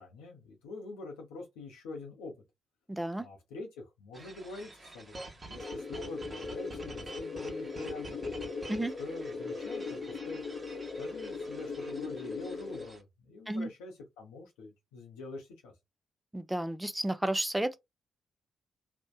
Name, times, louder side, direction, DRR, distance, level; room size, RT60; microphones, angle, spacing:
voice 1, 0.0-2.3 3.2-8.2 8.8-10.4 11.0-15.7, left 2 dB, 80° left, 0.6 m, -45 dB
voice 2, 2.9-3.3 8.7-8.9 13.5-13.7 16.3-17.8, right 1 dB, 10° right, 0.5 m, -32 dB
sound 1, 4.1-13.0, right 2 dB, 30° right, 0.9 m, -49 dB
sound 2, 5.6-12.9, left 4 dB, 50° left, 0.8 m, -39 dB
2.6 x 2.1 x 2.3 m
hypercardioid pair, 40°, 0 cm